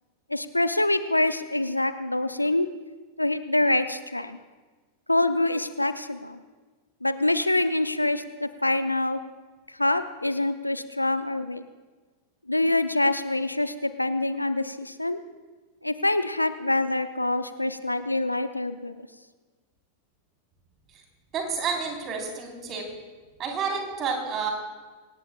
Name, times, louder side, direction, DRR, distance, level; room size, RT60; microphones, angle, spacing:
voice 1, 0.3-2.7 3.2-4.4 5.1-6.4 7.0-9.2 9.8-11.6 12.5-15.2 15.8-18.9, left 2 dB, 85° left, 12 dB, 0.6 m, -25 dB
voice 2, 21.3-22.8 23.4-24.5, right 5 dB, 30° right, 1 dB, 4.1 m, -29 dB
24.5 x 18.5 x 2.4 m, 1.3 s
figure-of-eight pair, 90°, 0 cm